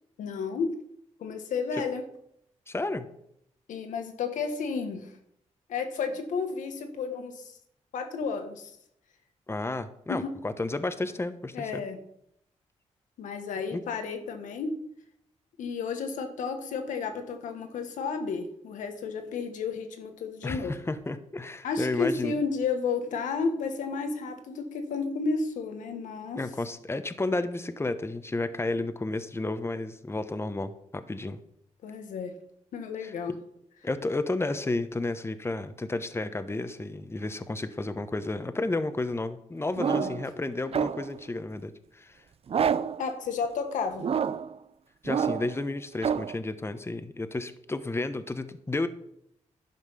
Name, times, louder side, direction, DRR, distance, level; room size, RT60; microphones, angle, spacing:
voice 1, 0.2-0.7 1.2-2.0 3.7-5.1 5.7-7.5 7.9-8.7 10.1-10.3 11.5-12.0 13.2-14.7 15.6-20.7 21.6-26.4 31.8-32.3 32.7-33.3 39.8-40.2 43.0-44.0, left 5 dB, 90° left, 6 dB, 1.5 m, -32 dB
voice 2, 2.7-3.1 9.5-11.8 13.7-13.8 20.4-22.4 26.4-31.4 33.0-33.1 33.8-42.2 45.0-48.9, left 2 dB, 20° left, 10 dB, 1.0 m, -32 dB
sound 1, 39.8-40.3 40.7-41.2 42.5-43.0 44.0-44.6 45.1-45.6 46.0-46.4, right 7 dB, 50° right, 0.5 m, -28 dB
11.0 x 5.7 x 5.7 m, 0.72 s
cardioid pair, 65°, 13 cm